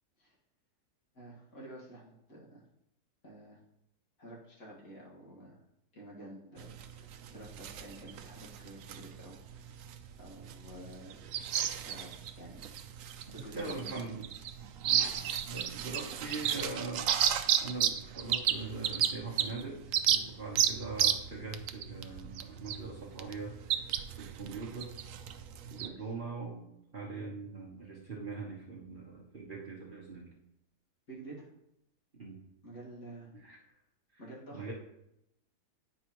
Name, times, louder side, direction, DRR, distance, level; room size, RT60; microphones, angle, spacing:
voice 1, 1.1-2.6 3.2-3.6 4.2-5.6 5.9-9.8 10.2-11.2 11.7-12.7 13.3-14.1 25.8-26.1 31.1-31.5 32.6-33.3 34.2-34.7, right 1 dB, 60° left, -5 dB, 2.3 m, -50 dB
sound 1, 6.6-25.9, right 9 dB, 70° right, 0.8 m, -33 dB
voice 2, 13.5-14.2 14.8-15.1 15.5-19.8 20.1-23.8 24.2-24.9 25.7-30.2 32.2-32.4 33.4-33.6 34.1-34.2 34.5-34.7, right 3 dB, 35° right, -4 dB, 1.1 m, -42 dB
9.3 x 5.4 x 3.0 m, 0.83 s
omnidirectional pair, 1.7 m